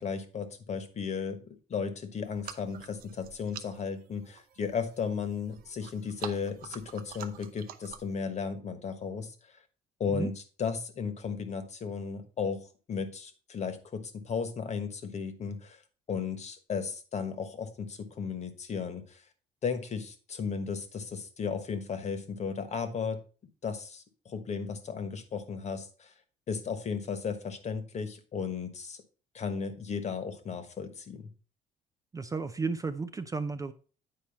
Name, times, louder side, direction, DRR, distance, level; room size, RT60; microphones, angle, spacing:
voice 1, 0.0-9.3 10.0-15.8 16.1-19.2 19.6-23.2 23.6-26.1 26.5-29.0 29.3-31.3, left 6 dB, 40° left, 9 dB, 1.3 m, -35 dB
sound 1, 2.2-8.2, right 9 dB, 60° right, 0.7 m, -47 dB
voice 2, 32.1-33.7, right 4 dB, 20° right, 10 dB, 0.5 m, -33 dB
8.9 x 4.6 x 4.2 m, 0.37 s
cardioid pair, 110°, 17 cm